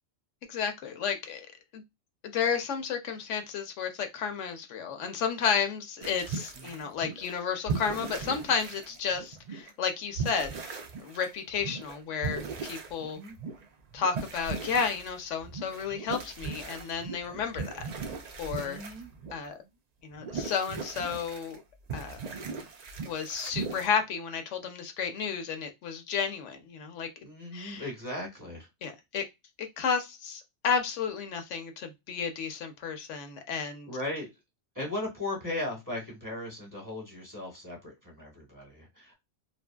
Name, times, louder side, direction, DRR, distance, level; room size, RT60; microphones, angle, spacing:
voice 1, 0.5-1.5 1.7-1.8 2.2-13.2 13.9-17.8 18.4-18.8 19.3-19.6 20.0-21.6 21.9-22.2 23.0-27.1 27.5-27.8 28.8-29.2 29.6-33.9, left 6 dB, 80° left, 0.9 m, -32 dB
sound 1, 6.0-7.4 7.7-9.7 10.1-19.5 20.1-21.6 21.9-23.9, right 5 dB, 65° right, 0.4 m, -38 dB
voice 2, 6.5-6.9 13.0-13.4 18.5-19.1 27.2-28.7 33.9-34.3 34.7-39.1, left 1 dB, 15° right, 0.9 m, -37 dB
2.6 x 2.5 x 2.2 m
omnidirectional pair, 1.2 m